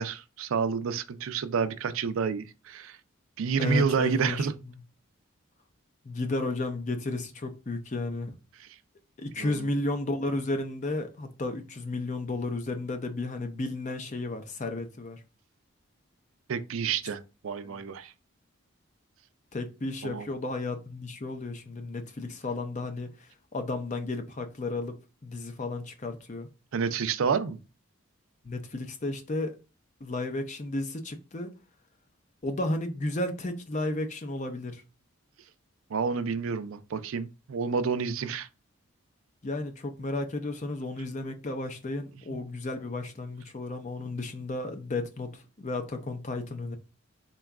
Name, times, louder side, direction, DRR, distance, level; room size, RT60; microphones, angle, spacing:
voice 1, 0.0-3.0 3.4-4.5 8.6-8.7 9.4-9.7 16.5-18.1 20.0-20.3 26.7-27.6 35.9-38.5 42.3-42.4, right 6 dB, 75° right, 0.4 m, -29 dB
voice 2, 3.6-4.5 6.0-8.3 9.2-15.2 17.6-17.8 19.5-25.0 25.2-26.5 28.4-29.6 30.0-31.5 32.4-34.8 39.4-46.8, left 2 dB, 35° left, 0.5 m, -33 dB
3.9 x 2.3 x 3.5 m
head